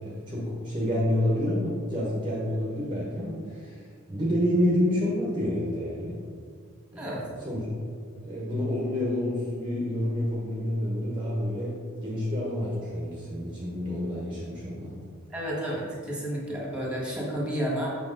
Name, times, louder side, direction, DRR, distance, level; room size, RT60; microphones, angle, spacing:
voice 1, 0.0-3.8 4.1-6.2 6.9-7.1 7.4-7.7 8.2-11.7 12.0-14.9, left 1 dB, 25° right, -5 dB, 1.1 m, -28 dB
voice 2, 6.9-7.3 15.3-18.0, equal, 5° right, -4 dB, 1.6 m, -31 dB
6.4 x 5.8 x 3.8 m, 2.1 s
head